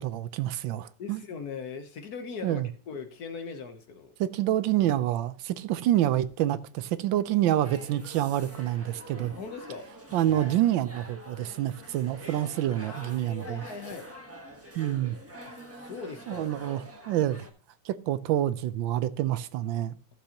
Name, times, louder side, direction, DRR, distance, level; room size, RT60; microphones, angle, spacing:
voice 1, 0.0-1.2 2.4-2.7 4.2-9.3 10.1-13.6 14.8-15.2 16.3-17.5 17.8-20.0, right 12 dB, 85° right, 1.3 m, -27 dB
voice 2, 1.0-4.1 9.4-9.9 12.8-14.1 15.8-16.5, left 5 dB, 60° left, 1.4 m, -40 dB
sound 1, 7.6-17.5, right 1 dB, 10° right, 1.0 m, -45 dB
14.5 x 7.1 x 2.9 m
omnidirectional pair, 2.1 m